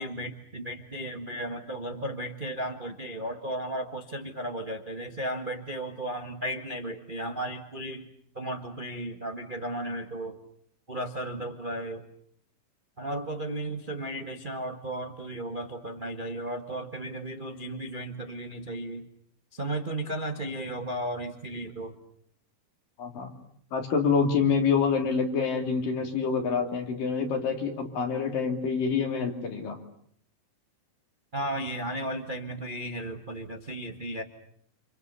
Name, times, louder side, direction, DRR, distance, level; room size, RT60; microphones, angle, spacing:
voice 1, 0.0-8.1 8.3-10.4 10.9-12.0 13.0-19.1 19.5-22.0 31.3-34.2, right 1 dB, 80° right, 5 dB, 0.4 m, -35 dB
voice 2, 23.0-23.3 23.7-29.8, left 5 dB, 70° left, 4 dB, 4.8 m, -27 dB
29.5 x 28.0 x 6.9 m, 0.64 s
omnidirectional pair, 4.1 m